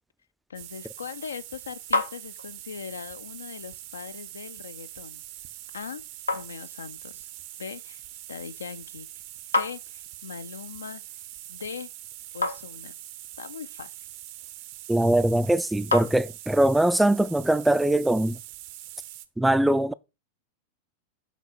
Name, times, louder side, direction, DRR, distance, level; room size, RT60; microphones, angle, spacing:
voice 1, 0.5-5.2 5.7-6.0 6.3-7.3 7.6-8.0 8.3-9.1 9.6-11.9 12.3-12.9 13.4-14.1, left 6 dB, 70° left, 0.4 m, -40 dB
sound 1, 0.5-19.3, right 14 dB, 45° right, 0.6 m, -43 dB
sound 2, 1.0-16.8, left 3 dB, 85° left, 1.0 m, -36 dB
voice 2, 14.9-18.4 19.4-19.9, right 1 dB, 5° right, 0.3 m, -22 dB
7.2 x 4.0 x 4.1 m
figure-of-eight pair, 90°, 0 cm